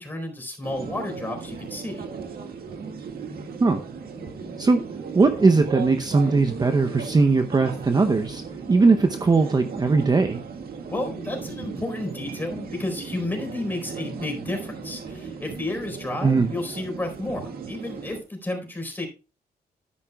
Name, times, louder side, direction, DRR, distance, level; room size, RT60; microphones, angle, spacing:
voice 1, 0.0-2.1 10.9-19.1, left 1 dB, 10° left, 2 dB, 4.2 m, -31 dB
sound 1, 0.6-18.2, right 5 dB, 70° right, 1.9 m, -36 dB
voice 2, 5.1-8.4 8.7-10.4 16.2-16.5, right 3 dB, 25° right, 7 dB, 0.7 m, -19 dB
12.5 x 10.5 x 2.3 m, 0.32 s
wide cardioid pair, 135°, 16 cm